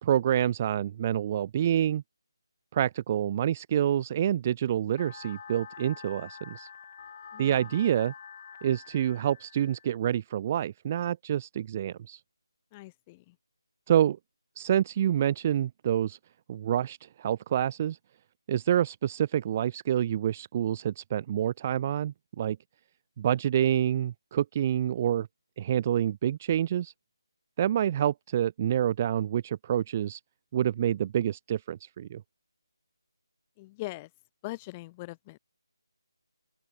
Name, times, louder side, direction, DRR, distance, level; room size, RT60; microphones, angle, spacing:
voice 1, 0.0-2.0 2.7-6.7 7.4-8.1 8.6-12.2 13.9-14.2 14.6-16.2 16.5-18.0 18.5-22.6 23.2-25.3 25.6-26.9 27.6-30.2 30.5-32.2, right 10 dB, 25° right, 0.8 m, -27 dB
sound 1, 5.0-10.0, left 7 dB, 35° left, 6.5 m, -47 dB
voice 2, 7.3-7.7 12.7-13.4 33.6-34.1 34.4-35.4, left 20 dB, 15° left, 7.1 m, -41 dB
open air
figure-of-eight pair, 155°, 3 cm